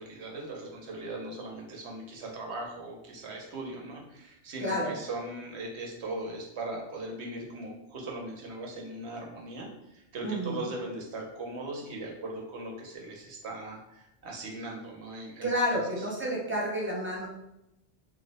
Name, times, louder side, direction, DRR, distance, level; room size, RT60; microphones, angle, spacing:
voice 1, 0.0-16.0, right 2 dB, 75° right, 0 dB, 1.0 m, -39 dB
voice 2, 4.6-4.9 10.2-10.7 15.4-17.3, equal, 15° right, -3 dB, 0.4 m, -30 dB
2.7 x 2.1 x 4.0 m, 0.86 s
omnidirectional pair, 1.1 m